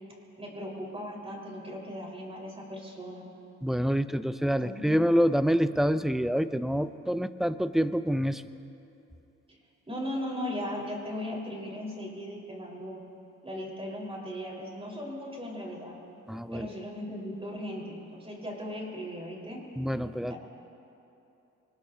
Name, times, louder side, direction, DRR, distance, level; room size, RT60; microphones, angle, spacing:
voice 1, 0.4-3.3 4.6-5.0 9.5-9.6 9.9-13.0 13.4-16.0 16.5-19.6 20.3-20.4, equal, 20° right, -2 dB, 4.5 m, -37 dB
voice 2, 3.6-8.4 16.3-16.7 19.8-20.3, equal, ahead, 12 dB, 0.5 m, -26 dB
24.5 x 20.5 x 2.8 m, 2.9 s
cardioid pair, 90°, 30 cm